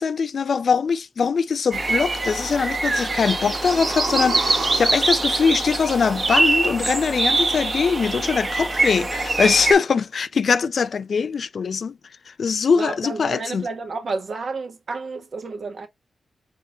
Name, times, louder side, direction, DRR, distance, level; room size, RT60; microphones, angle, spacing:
voice 1, 0.0-12.0 12.3-13.7, left 5 dB, 65° left, 0.4 m, -22 dB
sound 1, 1.7-9.7, right 2 dB, 40° right, 1.3 m, -23 dB
sound 2, 3.0-7.0 7.3-7.4, right 4 dB, 80° right, 1.8 m, -33 dB
voice 2, 12.7-15.9, right 4 dB, 65° right, 1.3 m, -31 dB
4.3 x 3.6 x 2.8 m
cardioid pair, 50°, 0 cm